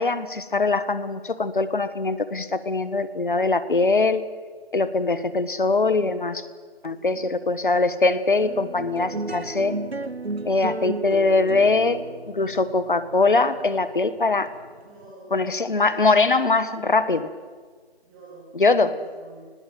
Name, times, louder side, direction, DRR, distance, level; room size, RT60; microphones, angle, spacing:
voice 1, 0.0-4.2 4.7-6.5 6.8-9.7 10.4-14.5 15.3-17.3 18.5-18.9, left 3 dB, 55° left, 14 dB, 1.6 m, -22 dB
voice 2, 6.9-7.2 14.8-16.0 18.0-18.5 18.7-19.5, right 2 dB, 10° right, -6 dB, 3.4 m, -48 dB
sound 1, 8.4-15.1, right 2 dB, 90° right, 1.1 m, -34 dB
21.0 x 19.0 x 9.2 m, 1.6 s
figure-of-eight pair, 155°, 31 cm